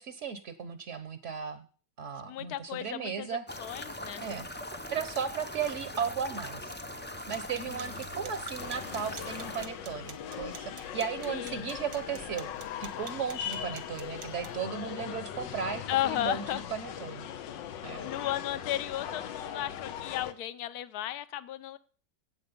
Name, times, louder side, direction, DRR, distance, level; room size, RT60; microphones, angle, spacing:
voice 1, 0.0-1.6 2.0-3.4 4.2-4.5 4.9-6.7 7.3-12.5 12.8-17.3 17.8-18.1, right 7 dB, 50° right, 12 dB, 1.1 m, -36 dB
voice 2, 2.3-4.3 7.6-8.0 11.3-11.7 15.9-16.6 18.0-21.8, left 13 dB, 65° left, 14 dB, 1.2 m, -34 dB
sound 1, 3.5-9.7, left 1 dB, 15° left, 0.3 m, -41 dB
sound 2, 7.1-14.6, right 7 dB, 75° right, 1.9 m, -50 dB
sound 3, 8.6-20.3, left 9 dB, 85° left, 1.6 m, -40 dB
14.5 x 8.4 x 5.2 m, 0.40 s
omnidirectional pair, 1.9 m